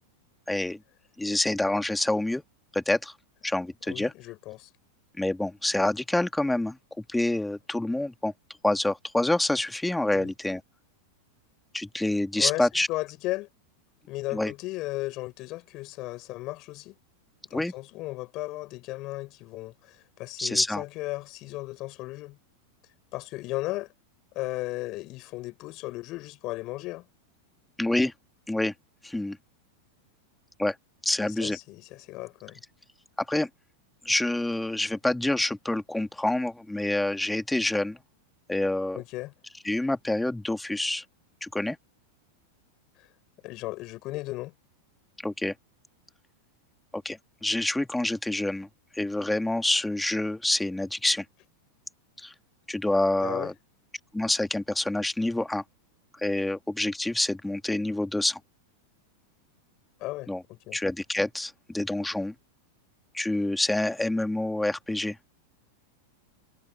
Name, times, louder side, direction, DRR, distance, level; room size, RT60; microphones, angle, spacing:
voice 1, 0.5-0.8 1.2-2.4 2.7-3.1 3.4-4.1 5.2-8.3 8.6-10.6 11.7-12.9 14.3-14.5 17.5-17.7 20.4-20.8 27.8-28.1 28.5-28.7 29.0-29.4 30.6-30.8 31.0-31.6 33.2-33.5 34.0-38.0 38.5-39.0 39.6-41.0 41.4-41.8 45.2-45.5 46.9-48.7 48.9-51.2 52.2-52.3 52.7-53.5 54.1-55.6 56.1-58.4 60.3-60.4 60.7-62.3 63.1-65.2, left 1 dB, 5° left, 2.8 m, -27 dB
voice 2, 3.9-4.7 10.1-10.3 12.4-13.5 14.1-16.9 17.5-22.4 23.1-23.9 24.3-27.1 31.2-32.6 38.9-39.3 43.0-43.1 43.4-44.5 53.2-53.5 60.0-60.8, left 19 dB, 40° left, 7.3 m, -35 dB
figure-of-eight pair, 90°, 0 cm